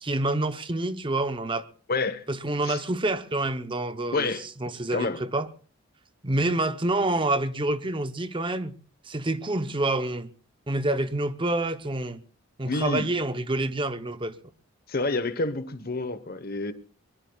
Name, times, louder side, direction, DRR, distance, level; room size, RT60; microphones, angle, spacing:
voice 1, 0.0-1.7 2.3-5.5 6.2-8.8 9.0-10.3 10.7-12.2 12.6-14.4, right 2 dB, 25° right, 0.8 m, -27 dB
voice 2, 1.9-2.3 2.6-2.8 4.1-4.4 4.9-5.2 12.6-13.1 14.9-16.7, left 3 dB, 45° left, 1.1 m, -28 dB
23.0 x 20.0 x 2.4 m
head